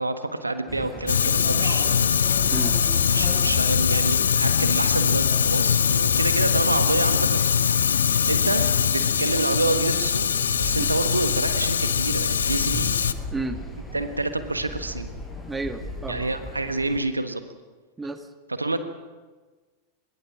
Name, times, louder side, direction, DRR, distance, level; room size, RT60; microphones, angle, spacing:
voice 1, 0.0-2.2 3.0-7.5 8.3-12.9 13.9-15.1 16.1-17.4 18.6-18.8, right 2 dB, 80° right, 9 dB, 1.4 m, -28 dB
sound 1, 0.7-17.0, left 1 dB, 10° left, 6.5 m, -38 dB
Fire, 1.1-13.1, left 7 dB, 70° left, 0.8 m, -22 dB
voice 2, 15.5-16.3 18.0-18.3, right 2 dB, 10° right, 8 dB, 1.7 m, -32 dB
24.0 x 21.5 x 6.0 m, 1.4 s
figure-of-eight pair, 90°, 0 cm